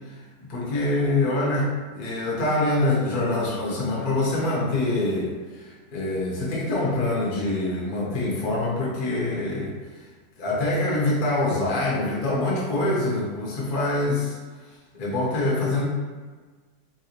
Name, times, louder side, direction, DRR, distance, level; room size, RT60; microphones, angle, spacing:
voice 1, 0.4-9.7 10.4-14.4 14.9-15.8, left 2 dB, 60° left, -5 dB, 0.5 m, -25 dB
3.4 x 2.6 x 2.9 m, 1.4 s
omnidirectional pair, 2.1 m